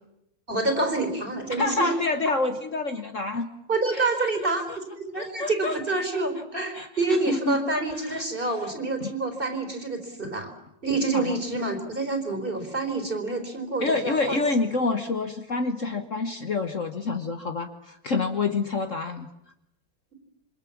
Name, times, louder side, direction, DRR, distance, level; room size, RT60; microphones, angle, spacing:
voice 1, 0.5-1.9 3.7-10.5 10.8-14.4, right 2 dB, 30° right, 5 dB, 4.4 m, -27 dB
voice 2, 1.6-3.5 3.9-4.3 4.7-4.8 5.2-5.8 6.7-6.9 7.3-7.6 8.1-8.2 9.0-9.1 11.1-11.4 13.8-19.3, left 3 dB, 45° left, 7 dB, 1.5 m, -27 dB
27.0 x 25.0 x 7.2 m, 0.82 s
omnidirectional pair, 2.0 m